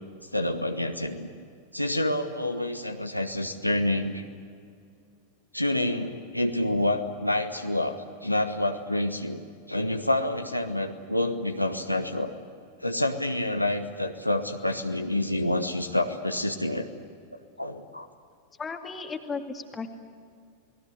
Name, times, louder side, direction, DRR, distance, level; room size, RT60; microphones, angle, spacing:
voice 1, 0.3-1.3 1.7-4.2 5.5-7.9 8.2-9.4 9.7-12.3 12.8-16.9 17.3-18.1, left 1 dB, 90° left, 6 dB, 1.3 m, -28 dB
voice 2, 18.6-20.0, left 4 dB, 15° left, 5 dB, 2.2 m, -35 dB
28.5 x 19.5 x 8.1 m, 2.3 s
figure-of-eight pair, 90°, 0 cm